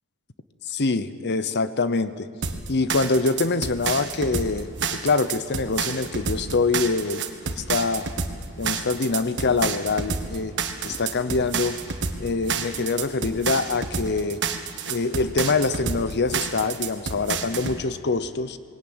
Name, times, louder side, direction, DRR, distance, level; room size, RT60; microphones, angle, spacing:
voice 1, 0.7-2.3 2.7-8.1 8.6-10.5 10.8-11.8 12.2-14.4 14.9-18.6, left 3 dB, 50° left, 13 dB, 0.8 m, -25 dB
sound 1, 2.4-17.8, right 5 dB, 55° right, 1.5 m, -29 dB
sound 2, 8.4-15.4, equal, 20° left, 2.6 m, -52 dB
21.0 x 17.5 x 8.8 m, 2.2 s
head